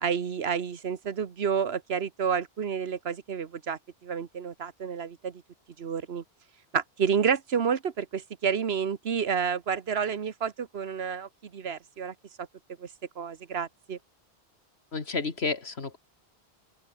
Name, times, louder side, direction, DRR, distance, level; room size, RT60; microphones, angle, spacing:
voice 1, 0.0-5.4 5.8-6.2 6.7-12.5 12.8-12.9 13.2-14.0, right 7 dB, 75° right, 1.4 m, -30 dB
voice 2, 14.9-16.0, left 4 dB, 85° left, 2.4 m, -31 dB
open air
omnidirectional pair, 1.1 m